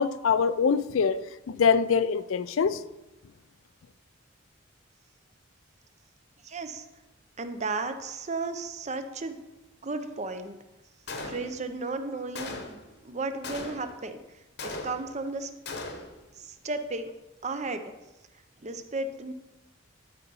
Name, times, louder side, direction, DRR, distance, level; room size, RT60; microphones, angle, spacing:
voice 1, 0.0-2.8, left 6 dB, 75° left, 0.4 m, -24 dB
voice 2, 6.4-6.9 7.4-9.4 9.8-10.6 11.2-15.5 16.4-17.1 17.4-17.8 18.6-19.3, right 3 dB, 35° right, 0.7 m, -34 dB
Gunshot gunfire, 11.1-11.8 12.4-12.9 13.4-14.1 14.6-15.3 15.7-16.2, left 3 dB, 55° left, 1.0 m, -38 dB
12.0 x 4.0 x 5.5 m
head